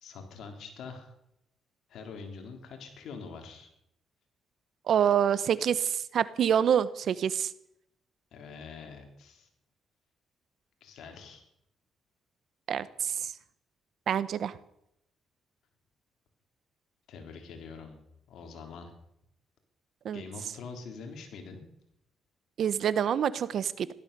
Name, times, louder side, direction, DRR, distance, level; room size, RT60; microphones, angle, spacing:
voice 1, 0.0-1.1 1.9-3.7 8.3-9.5 10.8-11.4 17.1-18.0 18.3-18.9 20.1-21.6, left 5 dB, 75° left, 4 dB, 3.7 m, -44 dB
voice 2, 4.9-7.5 12.7-13.3 14.1-14.5 20.0-20.2 22.6-23.9, right 8 dB, 65° right, 17 dB, 1.0 m, -27 dB
16.0 x 13.0 x 6.8 m, 0.78 s
cardioid pair, 90°, 0 cm